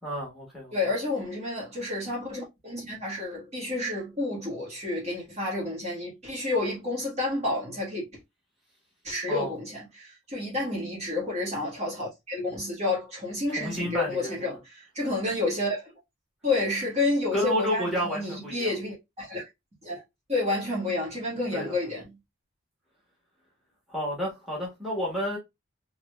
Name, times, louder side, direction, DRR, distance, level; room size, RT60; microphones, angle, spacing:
voice 1, 0.0-0.8 9.3-9.5 13.5-14.5 17.3-18.7 21.5-21.8 23.9-25.4, equal, ahead, 1.4 m, -30 dB
voice 2, 0.7-8.0 9.0-15.9 16.4-19.5 19.8-20.0 20.3-22.1, left 2 dB, 30° right, 1.6 m, -30 dB
3.8 x 3.1 x 2.3 m
head